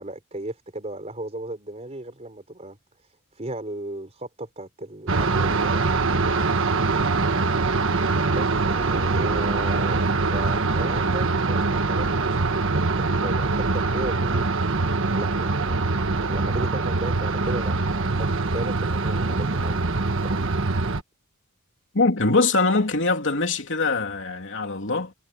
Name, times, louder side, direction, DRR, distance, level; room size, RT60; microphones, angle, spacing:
voice 1, 0.0-5.9 7.9-12.4 12.8-14.4 15.1-15.8 16.2-17.8 18.2-20.5, right 1 dB, 30° right, 4.0 m, -35 dB
sound 1, 5.1-21.0, right 3 dB, 60° right, 1.5 m, -23 dB
voice 2, 21.9-25.1, left 3 dB, 55° left, 3.1 m, -22 dB
head